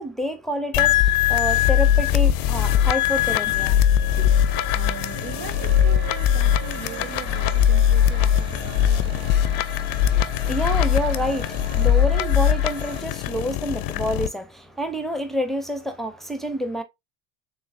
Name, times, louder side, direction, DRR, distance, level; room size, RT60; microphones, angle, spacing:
voice 1, 0.0-3.8 4.2-4.3 10.2-16.8, equal, ahead, 0.6 m, -28 dB
sound 1, 0.7-14.3, left 10 dB, 55° left, 0.5 m, -21 dB
sound 2, 3.5-13.0, right 4 dB, 25° right, 2.0 m, -38 dB
voice 2, 4.7-9.3, right 9 dB, 75° right, 0.7 m, -40 dB
3.8 x 3.4 x 2.5 m
hypercardioid pair, 70°, 42 cm